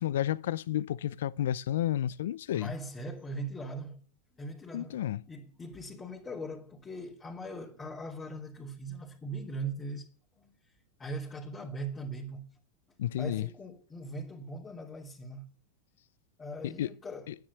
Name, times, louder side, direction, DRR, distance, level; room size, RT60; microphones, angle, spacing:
voice 1, 0.0-2.7 4.7-5.2 13.0-13.5 16.6-16.9 17.3-17.4, left 12 dB, 75° left, 0.6 m, -31 dB
voice 2, 2.5-4.1 4.3-10.1 10.4-10.5 11.0-12.5 13.2-15.5 16.4-17.3, right 2 dB, 20° left, 3.0 m, -40 dB
10.5 x 9.6 x 8.3 m
hypercardioid pair, 105°, 0 cm